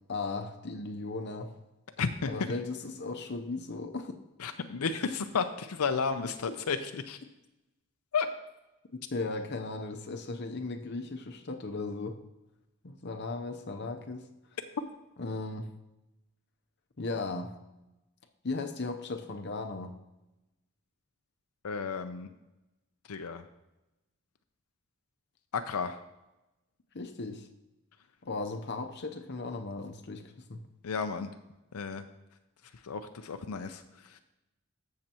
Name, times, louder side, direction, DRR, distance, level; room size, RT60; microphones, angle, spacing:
voice 1, 0.0-1.6 2.3-4.2 6.2-6.3 9.1-12.2 12.8-14.2 15.2-15.7 17.0-17.6 18.4-19.9 26.9-27.5 28.2-30.6, left 3 dB, 50° left, 5 dB, 0.8 m, -36 dB
voice 2, 2.0-2.3 4.4-7.2 8.1-8.3 21.6-22.3 23.1-23.4 25.5-26.0 30.8-31.3 31.7-32.0 32.8-33.8 34.1-34.2, left 5 dB, 90° left, 7 dB, 0.5 m, -32 dB
14.0 x 6.6 x 3.0 m, 0.98 s
head